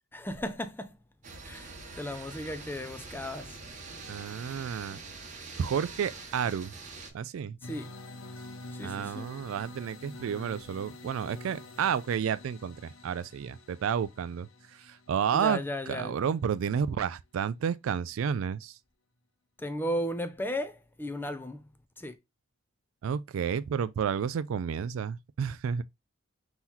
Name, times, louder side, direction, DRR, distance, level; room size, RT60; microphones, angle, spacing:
voice 1, 0.1-1.0 1.4-3.6 7.6-7.9 8.7-9.3 15.3-16.2 19.6-21.6 22.0-22.2, equal, 10° left, 0.5 m, -35 dB
sound 1, 1.2-7.1, right 3 dB, 35° right, 0.9 m, -44 dB
voice 2, 4.1-5.0 5.6-6.7 7.1-7.6 8.8-18.8 23.0-25.8, right 7 dB, 70° right, 0.3 m, -31 dB
sound 2, 7.6-16.4, left 2 dB, 80° left, 0.7 m, -47 dB
3.8 x 3.0 x 4.1 m
head